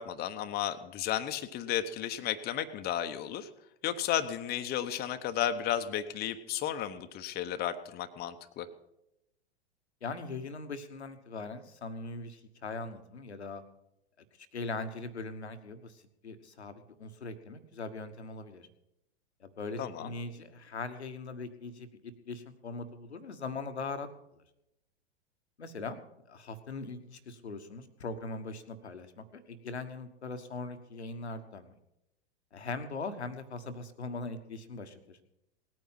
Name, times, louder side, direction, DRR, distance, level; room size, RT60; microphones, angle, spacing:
voice 1, 0.0-3.5 3.8-8.7 19.8-20.1, left 10 dB, 30° left, 9 dB, 1.0 m, -33 dB
voice 2, 10.0-13.6 14.4-18.7 19.4-24.1 24.3-24.4 25.6-26.0 26.3-31.8 32.5-35.2, left 3 dB, 85° left, 9 dB, 1.4 m, -40 dB
18.5 x 9.3 x 5.8 m, 0.86 s
hypercardioid pair, 100°, 32 cm